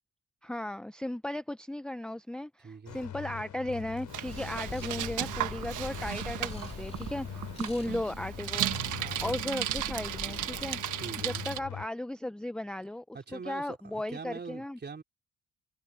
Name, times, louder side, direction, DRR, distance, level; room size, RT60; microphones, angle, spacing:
voice 1, 0.4-8.8 9.2-10.8 11.2-13.2 13.5-14.8, left 1 dB, 5° left, 0.6 m, -36 dB
voice 2, 2.6-3.0 7.7-8.0 9.0-9.4 10.9-11.4 13.1-15.0, right 5 dB, 35° right, 4.1 m, -43 dB
sound 1, 2.9-11.9, left 10 dB, 70° left, 5.5 m, -43 dB
Bicycle, 4.1-11.6, right 13 dB, 85° right, 1.3 m, -35 dB
sound 2, 4.3-10.7, left 3 dB, 20° left, 3.4 m, -46 dB
cardioid pair, 90°, 30 cm